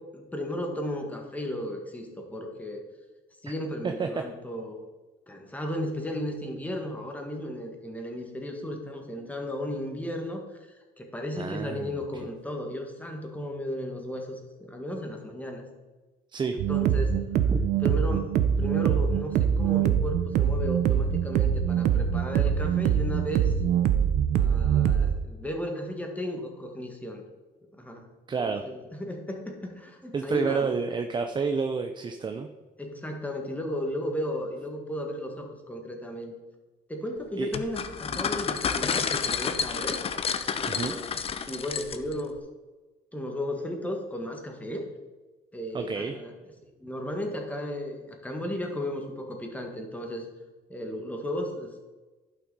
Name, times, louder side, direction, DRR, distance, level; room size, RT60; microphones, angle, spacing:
voice 1, 0.1-2.8 3.4-4.8 5.3-15.6 16.7-17.2 17.8-23.5 24.4-27.2 27.7-28.1 28.4-30.7 32.8-36.3 36.9-40.0 40.5-41.1 41.5-42.4 43.1-44.9 45.5-46.3 46.8-50.2 50.7-51.8, left 1 dB, 10° left, 2 dB, 1.6 m, -35 dB
voice 2, 3.8-4.2 11.4-12.0 16.3-16.6 17.5-17.6 28.3-28.6 30.1-32.5 37.4-37.5 40.7-40.9 45.7-46.1, right 5 dB, 25° right, 6 dB, 0.6 m, -29 dB
sound 1, 16.6-25.2, right 8 dB, 70° right, 0.7 m, -24 dB
Ice into a glass, 37.5-42.2, left 6 dB, 35° left, 0.6 m, -30 dB
11.0 x 6.0 x 4.1 m, 1.2 s
cardioid pair, 110°, 17 cm